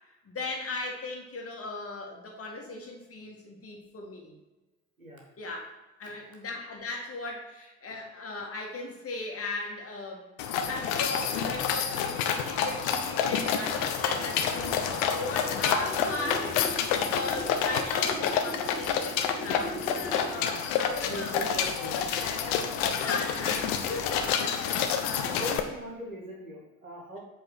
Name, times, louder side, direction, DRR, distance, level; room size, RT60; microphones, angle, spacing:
voice 1, 0.3-4.3 5.4-5.7 6.0-10.3 10.7-19.8 20.3-21.4 23.0-25.0, left 3 dB, 35° left, 0 dB, 2.1 m, -37 dB
voice 2, 6.0-6.4 7.9-8.0 16.8-17.1 20.3-22.3 23.4-23.5 25.2-27.2, equal, 90° right, -1 dB, 1.4 m, -41 dB
sound 1, 10.4-25.6, left 7 dB, 60° left, 0.9 m, -29 dB
sound 2, 11.9-20.5, equal, 5° right, 1.6 m, -41 dB
7.8 x 4.1 x 6.2 m, 1.1 s
figure-of-eight pair, 55°, 40 cm